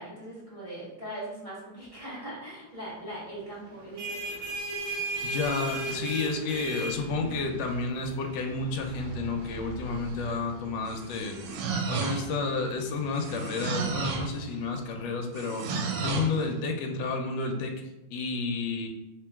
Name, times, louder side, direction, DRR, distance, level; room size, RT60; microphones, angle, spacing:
voice 1, 0.0-4.2, right 1 dB, 20° right, -9 dB, 1.0 m, -40 dB
sound 1, 3.7-15.0, right 2 dB, 60° right, 0.8 m, -39 dB
voice 2, 5.2-11.4 11.9-15.7 16.0-17.7 18.1-18.9, left 3 dB, 75° left, 3 dB, 1.2 m, -31 dB
sound 2, 10.9-12.5 13.1-14.4 15.3-16.4, right 5 dB, 85° right, 1.4 m, -32 dB
3.0 x 2.9 x 3.4 m, 0.97 s
omnidirectional pair, 2.2 m